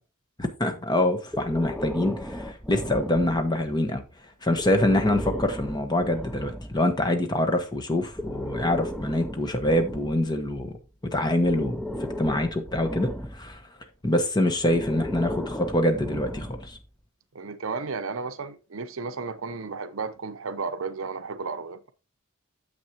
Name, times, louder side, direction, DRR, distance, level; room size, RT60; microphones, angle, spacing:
voice 1, 0.4-4.0 4.4-10.8 11.1-11.8 12.2-13.6 14.0-16.8, left 1 dB, 20° left, 1.3 m, -25 dB
Breathing, 1.3-3.7 4.5-6.8 7.9-10.8 11.4-13.6 14.6-16.9, left 1 dB, 5° left, 0.5 m, -35 dB
voice 2, 17.3-21.9, right 4 dB, 65° right, 0.7 m, -33 dB
9.5 x 7.3 x 2.9 m
head